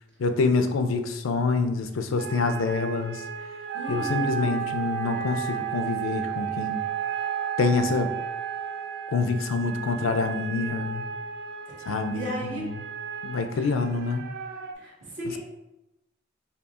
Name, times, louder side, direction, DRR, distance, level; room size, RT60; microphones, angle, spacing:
voice 1, 0.2-3.2 3.9-6.8 7.6-8.1 9.1-11.0 11.9-12.7 13.2-14.3, left 4 dB, 80° left, 7 dB, 0.4 m, -26 dB
sound 1, 2.2-14.7, right 5 dB, 55° right, 0.3 m, -38 dB
Wind instrument woodwind instrument, 3.7-9.6, right 11 dB, 30° right, 0.8 m, -32 dB
voice 2, 3.7-4.5 12.1-12.6 13.5-13.6 14.7-15.4, right 1 dB, 70° right, -4 dB, 1.3 m, -35 dB
5.4 x 2.3 x 2.4 m, 0.94 s
head